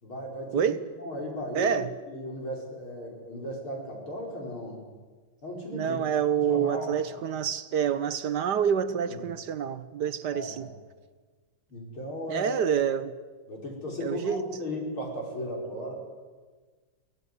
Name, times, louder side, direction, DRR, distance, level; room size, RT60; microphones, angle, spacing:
voice 1, 0.0-1.8 2.1-4.8 5.4-6.0 6.3-7.0 9.1-9.2 10.3-10.7 11.7-12.5 13.5-15.9, left 1 dB, 70° left, 5.8 m, -36 dB
voice 2, 1.5-1.9 5.7-10.7 12.3-13.1 14.0-14.4, right 8 dB, 60° right, 1.3 m, -27 dB
24.5 x 16.5 x 9.5 m
omnidirectional pair, 2.4 m